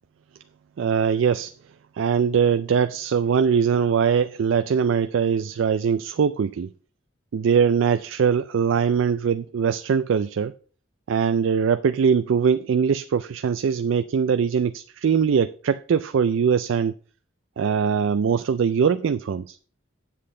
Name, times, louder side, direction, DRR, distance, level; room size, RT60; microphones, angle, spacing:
voice 1, 0.8-1.5 2.0-6.7 7.3-10.5 11.1-16.9 17.6-19.6, right 6 dB, 75° right, 10 dB, 0.4 m, -22 dB
8.4 x 7.5 x 3.7 m, 0.42 s
head